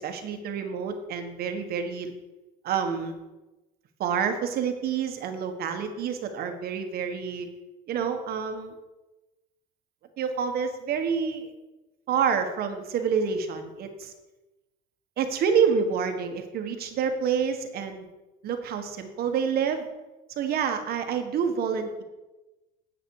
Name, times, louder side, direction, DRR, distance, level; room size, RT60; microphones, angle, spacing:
voice 1, 0.0-2.1 2.6-3.2 4.0-7.5 7.9-8.7 10.2-11.5 12.1-14.1 15.2-18.1 18.4-19.9 20.4-22.0, right 6 dB, 55° right, 6 dB, 1.5 m, -28 dB
9.8 x 7.7 x 4.8 m, 1.1 s
supercardioid pair, 105°, 19 cm